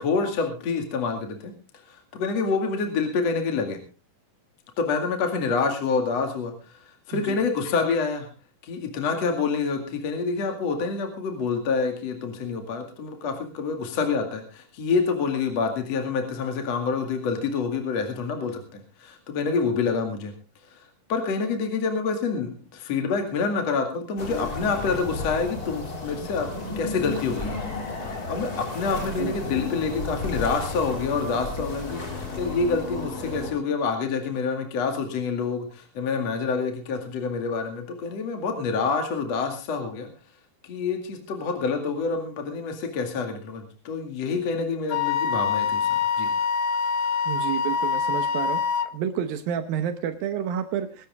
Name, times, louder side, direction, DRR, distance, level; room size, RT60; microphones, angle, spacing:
voice 1, 0.0-1.5 1.9-3.8 4.8-8.3 8.6-20.3 20.7-20.8 21.1-26.5 26.8-27.7 28.3-40.1 40.6-46.3, left 4 dB, 50° left, 4 dB, 3.1 m, -27 dB
sound 1, 24.2-33.5, left 3 dB, 25° left, 3.0 m, -33 dB
Wind instrument woodwind instrument, 44.9-48.9, left 6 dB, 75° left, 1.8 m, -25 dB
voice 2, 47.3-48.6 48.9-51.1, right 9 dB, 75° right, 8 dB, 2.8 m, -29 dB
21.5 x 12.0 x 3.6 m, 0.33 s
omnidirectional pair, 4.2 m